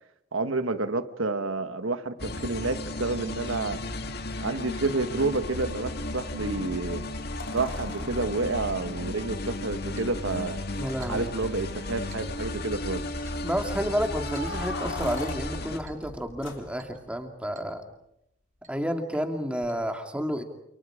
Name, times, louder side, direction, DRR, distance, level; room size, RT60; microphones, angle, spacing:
voice 1, 0.3-3.8 4.4-7.1 7.5-10.6 11.1-13.1, right 3 dB, 80° right, 1.5 m, -29 dB
sound 1, 2.2-15.8, left 2 dB, 50° left, 2.0 m, -34 dB
sound 2, 5.1-5.2 7.4-9.8 10.7-10.8 11.1-11.2 11.8-12.3 14.0-17.1 19.6-19.7, left 2 dB, 65° left, 4.1 m, -41 dB
Chink clink, 10.0-10.2 11.0-11.3 12.1-12.3 13.3-13.5 14.3-14.6 15.2-15.4 15.9-16.1 16.8-17.0 17.5-17.8 18.0-18.1 18.6-18.8 19.7-19.8, right 6 dB, 40° right, 3.8 m, -53 dB
voice 2, 10.8-11.3 13.4-17.8 18.7-20.4, equal, 5° right, 2.4 m, -30 dB
28.5 x 28.5 x 5.0 m
head